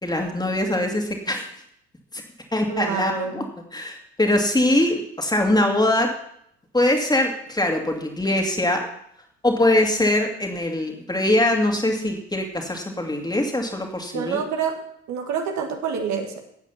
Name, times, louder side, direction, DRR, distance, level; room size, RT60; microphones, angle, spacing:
voice 1, 0.0-1.4 2.1-2.2 2.5-3.4 3.7-6.1 6.7-8.9 9.4-14.4, left 1 dB, 10° left, 2 dB, 2.5 m, -22 dB
voice 2, 2.7-3.5 14.1-14.8 15.1-16.4, right 6 dB, 55° right, 4 dB, 1.7 m, -27 dB
12.0 x 9.0 x 5.7 m, 0.72 s
figure-of-eight pair, 50°, 34 cm